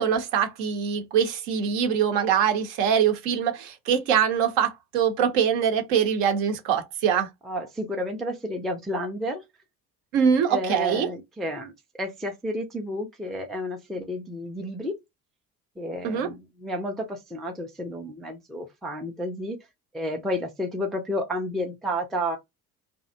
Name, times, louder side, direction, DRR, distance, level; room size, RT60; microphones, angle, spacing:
voice 1, 0.0-7.3 10.1-11.1 16.0-16.3, right 8 dB, 60° right, 0.7 m, -23 dB
voice 2, 7.4-9.4 10.5-11.7 12.0-15.0 15.8-19.6 19.9-22.4, equal, ahead, 0.4 m, -31 dB
2.5 x 2.0 x 2.5 m
figure-of-eight pair, 55°, 47 cm